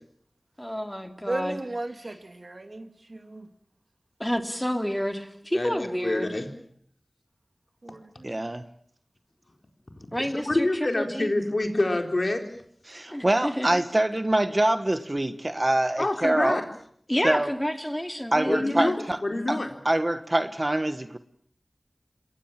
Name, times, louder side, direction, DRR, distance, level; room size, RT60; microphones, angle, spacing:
voice 1, 0.6-1.6 2.0-2.2 4.2-6.3 10.1-11.3 13.1-13.8 17.1-18.9, equal, 10° left, 7 dB, 3.0 m, -30 dB
voice 2, 1.3-3.5 7.8-8.4, right 2 dB, 55° right, 8 dB, 2.4 m, -35 dB
voice 3, 5.5-6.5 10.1-12.4 16.0-16.6 18.5-19.7, left 2 dB, 55° left, 5 dB, 4.3 m, -27 dB
voice 4, 8.2-8.6 12.9-16.6 17.2-17.5 18.3-19.2 19.5-19.6 19.8-21.2, right 1 dB, 35° right, 11 dB, 1.4 m, -25 dB
28.5 x 21.5 x 7.6 m, 0.64 s
wide cardioid pair, 60°, 0 cm